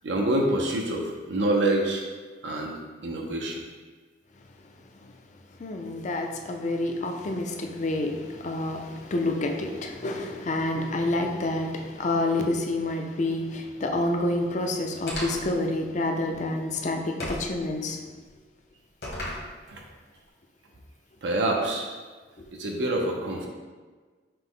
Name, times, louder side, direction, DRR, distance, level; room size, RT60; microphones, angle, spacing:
voice 1, 0.0-2.0 2.4-2.8 3.0-3.6 19.7-19.8 21.2-21.9 22.6-23.5, right 1 dB, 80° right, 0 dB, 0.6 m, -26 dB
voice 2, 5.6-18.0, left 2 dB, 40° left, 3 dB, 0.4 m, -28 dB
sound 1, 15.1-15.6 17.2-17.6 19.0-19.5, left 1 dB, 60° left, 1.1 m, -33 dB
5.6 x 2.0 x 3.6 m, 1.4 s
head